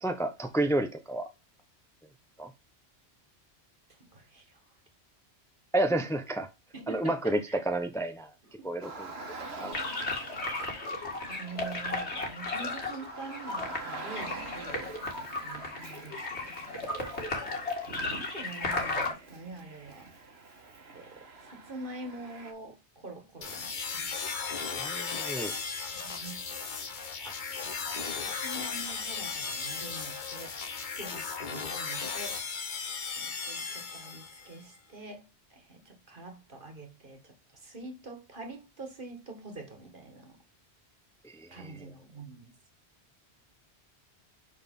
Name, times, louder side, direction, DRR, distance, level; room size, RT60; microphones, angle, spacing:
voice 1, 0.0-1.3 2.4-2.5 5.7-6.5 6.9-7.4 7.7-8.3 8.6-9.1 9.5-9.9 24.8-25.5 27.2-27.3 41.2-41.7, right 1 dB, 5° left, 0.9 m, -30 dB
voice 2, 3.9-4.6 5.9-6.0 6.7-7.6 8.4-8.7 11.3-17.1 18.0-20.1 20.9-24.1 25.8-26.6 27.5-30.5 30.9-32.4 33.1-40.4 41.5-42.6, right 3 dB, 50° right, 1.9 m, -45 dB
Car, 8.8-22.5, right 3 dB, 70° right, 1.7 m, -46 dB
sound 1, 9.7-19.1, left 2 dB, 80° left, 2.4 m, -35 dB
sound 2, 23.4-34.6, left 5 dB, 45° left, 1.1 m, -36 dB
6.3 x 6.1 x 3.7 m
omnidirectional pair, 1.1 m